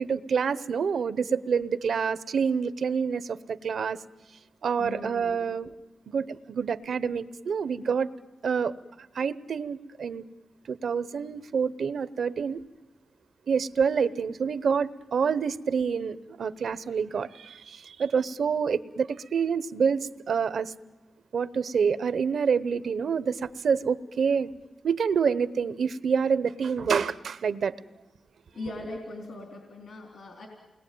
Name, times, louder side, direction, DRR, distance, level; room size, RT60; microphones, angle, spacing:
voice 1, 0.0-4.0 4.6-5.7 6.1-8.1 8.4-8.8 9.1-10.2 10.7-12.6 13.5-20.0 20.3-20.7 21.3-24.5 24.8-27.7 28.6-28.7, right 6 dB, 75° right, 14 dB, 0.9 m, -27 dB
voice 2, 4.8-5.4 28.6-30.5, left 2 dB, 75° left, 0 dB, 3.7 m, -39 dB
29.0 x 21.5 x 9.3 m, 1.2 s
wide cardioid pair, 140°, 0 cm